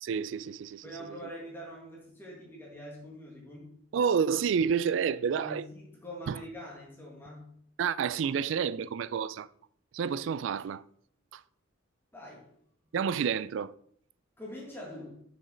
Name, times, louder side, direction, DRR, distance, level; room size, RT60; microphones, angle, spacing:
voice 1, 0.0-1.2 3.9-5.6 6.3-6.4 7.8-9.5 9.9-10.8 11.3-11.4 12.9-13.7, right 7 dB, 65° right, 0.3 m, -29 dB
voice 2, 0.8-3.7 5.3-7.5 12.1-12.5 14.4-15.2, equal, 10° left, 1.9 m, -44 dB
6.8 x 6.4 x 3.9 m
head